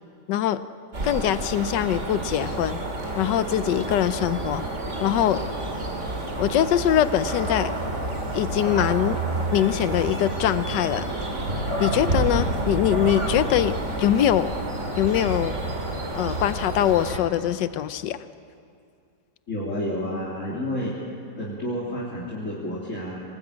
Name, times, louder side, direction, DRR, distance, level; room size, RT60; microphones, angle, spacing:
voice 1, 0.3-0.6 1.0-2.8 3.2-4.6 5.0-5.5 6.4-7.7 8.3-9.2 9.5-11.1 11.8-14.5 15.0-15.6 16.1-18.2, left 11 dB, 85° left, 13 dB, 1.4 m, -23 dB
sound 1, 0.9-17.2, right 2 dB, 45° right, 2.9 m, -29 dB
voice 2, 19.5-20.9 21.4-23.2, equal, 45° left, -7 dB, 3.6 m, -30 dB
25.0 x 19.0 x 8.7 m, 2.5 s
omnidirectional pair, 1.8 m